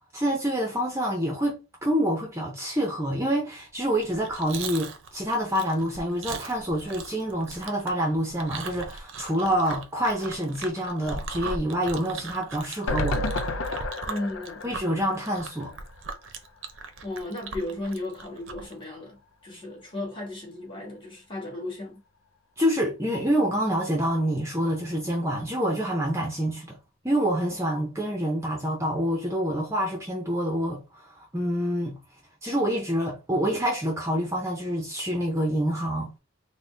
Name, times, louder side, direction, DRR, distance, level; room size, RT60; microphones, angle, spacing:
voice 1, 0.1-13.3 14.6-15.7 22.6-26.8 27.0-32.0 32.4-36.1, equal, 15° right, 0.6 m, -27 dB
Chewing mastication, 3.9-18.7, right 4 dB, 65° right, 0.6 m, -39 dB
sound 1, 12.9-16.1 16.5-16.6 16.8-16.9, left 2 dB, 70° left, 0.5 m, -31 dB
voice 2, 14.1-14.6 17.0-22.0, left 1 dB, 25° left, 1.5 m, -35 dB
4.0 x 2.2 x 3.3 m
head